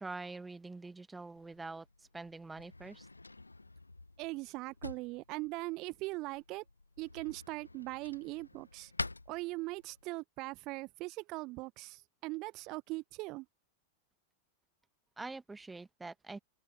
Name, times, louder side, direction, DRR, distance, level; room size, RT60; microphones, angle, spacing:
voice 1, 0.0-3.1 15.2-16.4, right 3 dB, 10° right, 1.9 m, -45 dB
Drawer open or close, 1.3-10.1, left 2 dB, 80° left, 1.2 m, -48 dB
voice 2, 4.2-6.6 7.0-8.9 9.3-13.5, right 22 dB, 40° right, 1.2 m, -40 dB
open air
figure-of-eight pair, 90°, 0 cm